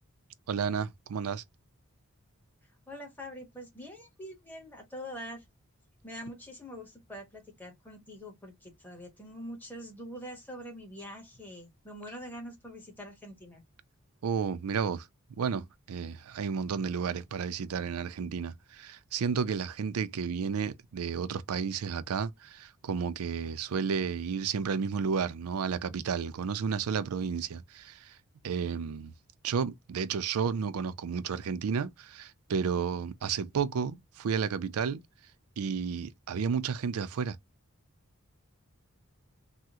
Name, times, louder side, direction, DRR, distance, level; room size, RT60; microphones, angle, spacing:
voice 1, 0.5-1.4 14.2-15.1 15.4-28.2 28.4-29.1 29.4-35.0 35.6-37.4, right 6 dB, 80° right, 0.4 m, -32 dB
voice 2, 2.9-5.4 6.0-13.6, equal, 10° left, 1.1 m, -44 dB
3.5 x 2.1 x 2.8 m
head